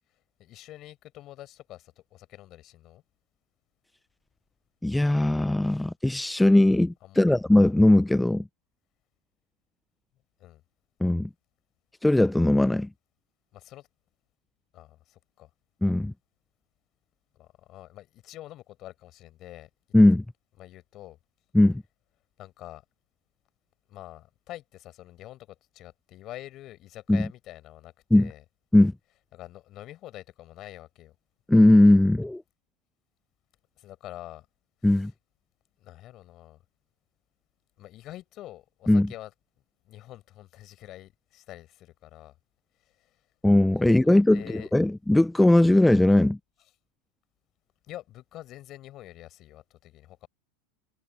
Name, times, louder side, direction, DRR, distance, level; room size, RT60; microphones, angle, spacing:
voice 1, 0.4-3.0 7.0-7.4 10.4-10.6 13.5-13.9 14.7-15.5 17.3-19.7 20.6-21.2 22.4-22.8 23.9-28.4 29.3-31.2 33.8-34.5 34.8-35.0 35.8-36.6 37.8-39.3 39.9-42.3 43.8-44.7 47.9-50.3, left 14 dB, 45° left, 5.3 m, -46 dB
voice 2, 4.8-8.4 11.0-11.3 12.0-12.9 15.8-16.1 19.9-20.2 21.5-21.8 27.1-27.3 28.1-28.3 28.7-28.9 31.5-32.4 34.8-35.1 38.9-39.1 43.4-46.4, left 1 dB, 5° left, 0.4 m, -19 dB
hypercardioid pair, 105°, 0 cm